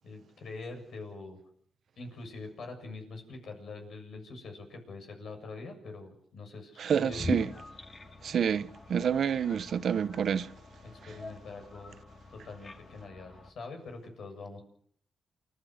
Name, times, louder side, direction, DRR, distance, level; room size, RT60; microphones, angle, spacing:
voice 1, 0.0-1.4 2.0-7.5 10.8-12.0 12.3-14.6, left 3 dB, 70° left, 7.3 m, -44 dB
voice 2, 6.8-7.5 8.2-10.5, right 8 dB, 65° right, 0.9 m, -28 dB
sound 1, 7.1-13.5, left 2 dB, 35° left, 2.5 m, -43 dB
29.0 x 12.5 x 8.1 m
cardioid pair, 90°, 0 cm